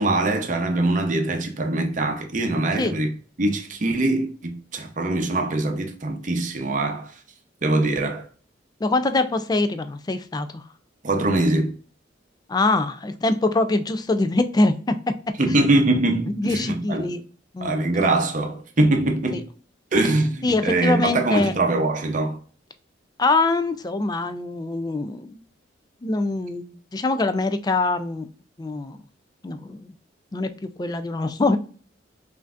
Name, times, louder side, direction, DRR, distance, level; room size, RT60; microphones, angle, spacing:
voice 1, 0.0-3.1 3.4-7.1 7.6-8.3 11.0-11.7 15.4-17.1 17.6-19.4 19.9-22.4, right 2 dB, 45° right, 0.7 m, -23 dB
voice 2, 8.8-10.6 12.5-14.9 15.5-15.6 16.4-17.2 17.5-17.7 19.3-19.4 20.4-21.5 23.2-25.4 26.0-28.3 28.6-29.0 29.4-29.9 30.3-30.5 30.8-31.6, left 2 dB, 20° left, 0.3 m, -23 dB
5.5 x 2.6 x 2.4 m
head